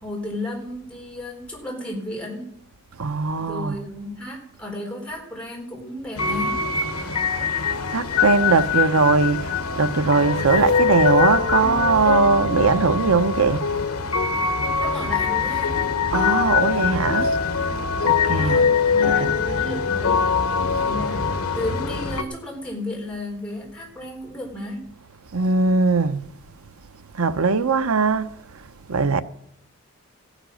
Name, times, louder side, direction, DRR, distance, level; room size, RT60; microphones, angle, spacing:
voice 1, 0.0-2.6 3.4-6.7 14.8-15.8 17.5-17.9 18.2-20.3 20.8-24.9, left 1 dB, 5° left, 4.0 m, -33 dB
voice 2, 3.0-3.8 6.9-7.1 7.9-13.7 16.1-17.7 18.0-18.7 19.0-19.3 25.3-26.2 27.1-28.6 28.9-29.2, right 4 dB, 80° right, 0.8 m, -20 dB
sound 1, 6.2-22.2, left 5 dB, 85° left, 1.1 m, -23 dB
15.5 x 10.0 x 6.4 m
head